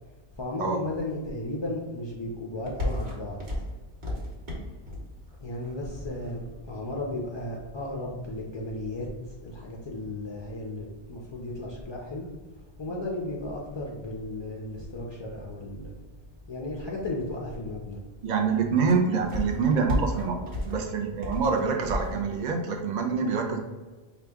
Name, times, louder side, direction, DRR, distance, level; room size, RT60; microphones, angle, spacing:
voice 1, 0.3-3.4 5.4-12.3 12.8-16.0 16.5-18.0, left 1 dB, 45° left, -1 dB, 0.3 m, -35 dB
sound 1, 2.5-22.4, left 1 dB, 85° right, 1.4 m, -39 dB
voice 2, 18.2-20.4 20.7-23.6, right 5 dB, 50° right, 2 dB, 0.6 m, -26 dB
4.9 x 2.4 x 3.4 m, 1.3 s
omnidirectional pair, 1.1 m